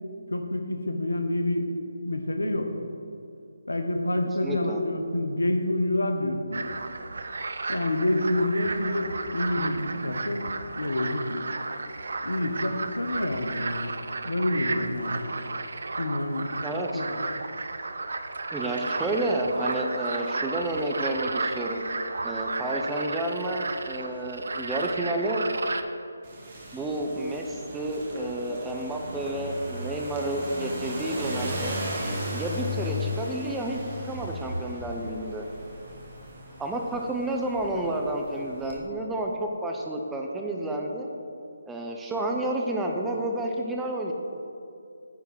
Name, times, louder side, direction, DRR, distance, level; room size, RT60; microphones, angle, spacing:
voice 1, 0.3-1.7 2.0-2.7 3.7-6.7 7.7-11.4 12.2-13.9 14.2-15.3 16.0-16.5 16.9-17.2, left 1 dB, 75° left, 5 dB, 0.9 m, -28 dB
voice 2, 4.4-4.8 16.6-17.0 18.5-21.8 22.2-25.5 26.7-31.8 32.3-33.8 34.0-35.5 36.6-41.1 41.7-44.1, right 1 dB, 5° right, 0 dB, 0.6 m, -30 dB
sound 1, 6.5-25.8, right 3 dB, 60° right, 0.5 m, -33 dB
sound 2, 26.2-38.8, left 1 dB, 30° right, 1.5 m, -36 dB
9.6 x 3.7 x 6.0 m, 2.5 s
figure-of-eight pair, 150°, 0 cm